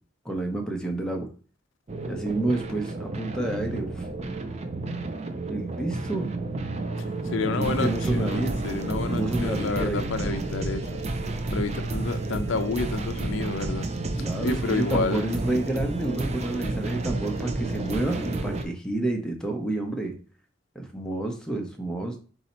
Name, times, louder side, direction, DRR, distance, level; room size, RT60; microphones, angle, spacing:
voice 1, 0.2-1.3 2.1-4.1 5.5-6.3 7.5-8.6 9.1-10.5 14.2-20.1 20.7-22.2, right 2 dB, 5° left, 0.6 m, -29 dB
sound 1, 1.9-18.6, right 2 dB, 35° right, 0.4 m, -31 dB
voice 2, 7.0-11.0 11.5-13.9 14.2-15.3, left 4 dB, 70° left, 0.4 m, -30 dB
4.1 x 2.7 x 4.2 m
head